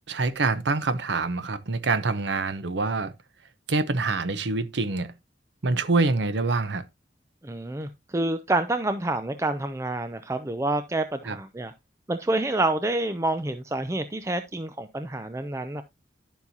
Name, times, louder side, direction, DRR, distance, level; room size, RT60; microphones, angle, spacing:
voice 1, 0.1-3.1 3.7-5.1 5.6-6.8 11.2-11.4, right 3 dB, 75° right, 0.8 m, -25 dB
voice 2, 7.4-11.7 12.1-15.8, right 2 dB, 15° right, 0.4 m, -28 dB
11.0 x 7.2 x 2.7 m
head